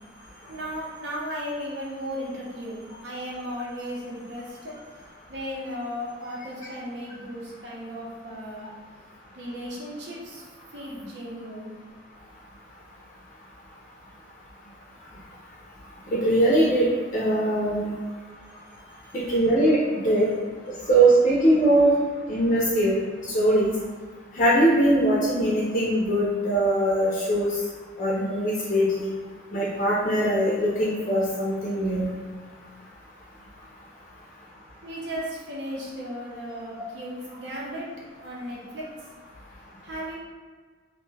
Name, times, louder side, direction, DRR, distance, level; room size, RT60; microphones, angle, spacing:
voice 1, 0.5-4.8 5.3-8.7 9.3-11.7 34.8-37.9 38.2-38.9 39.8-40.2, equal, 75° right, -4 dB, 0.7 m, -35 dB
voice 2, 16.1-16.9 17.1-17.9 19.1-20.3 20.9-21.9 22.3-23.0 23.3-23.7 24.3-27.6 28.0-29.1 29.5-32.1, right 1 dB, 40° left, -6 dB, 0.4 m, -21 dB
2.5 x 2.2 x 3.2 m, 1.5 s
head